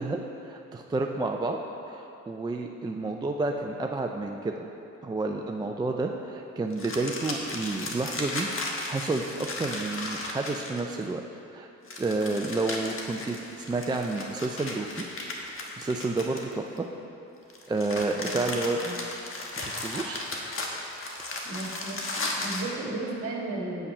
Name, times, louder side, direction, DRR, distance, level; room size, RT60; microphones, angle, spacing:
voice 1, 0.0-1.6 1.9-4.5 5.0-11.2 11.5-11.7 12.0-15.1 15.5-16.9 17.7-18.8 19.6-20.2 21.2-21.4, right 3 dB, 15° right, 2 dB, 0.4 m, -30 dB
sound 1, 6.7-11.0 11.9-16.8 17.5-22.7, left 2 dB, 45° left, 1.2 m, -35 dB
voice 2, 21.4-23.9, right 2 dB, 50° right, -2 dB, 1.8 m, -35 dB
8.4 x 5.7 x 5.4 m, 2.8 s
cardioid pair, 90°, 30 cm